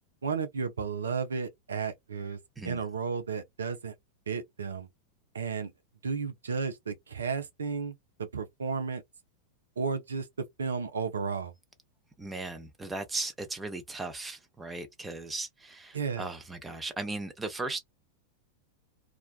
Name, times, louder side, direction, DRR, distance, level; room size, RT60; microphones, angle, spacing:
voice 1, 0.2-2.4 2.6-3.9 4.3-4.9 5.3-5.7 6.0-7.9 8.2-9.0 9.8-10.3 10.6-11.5 15.9-16.3, right 5 dB, 70° right, 0.4 m, -33 dB
voice 2, 12.2-17.8, right 2 dB, 10° right, 0.6 m, -37 dB
2.4 x 2.2 x 2.4 m
figure-of-eight pair, 90°, 0 cm